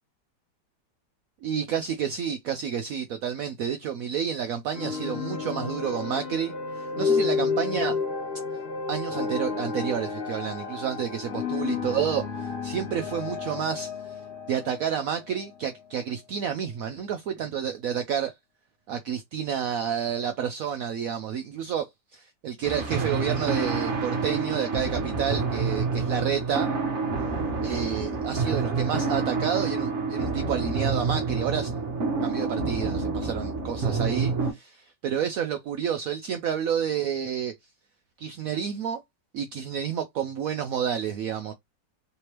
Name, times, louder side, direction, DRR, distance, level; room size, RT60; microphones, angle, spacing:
voice 1, 1.4-8.0 8.9-14.1 14.5-18.3 18.9-21.8 22.4-26.7 27.6-31.7 32.2-34.7 35.0-37.5 38.2-39.0 39.3-41.5, right 8 dB, 80° right, 0.7 m, -30 dB
sound 1, 4.7-16.0, left 5 dB, 35° left, 1.2 m, -31 dB
sound 2, 22.6-34.5, right 4 dB, 50° right, 1.0 m, -28 dB
3.4 x 3.2 x 2.9 m
omnidirectional pair, 2.0 m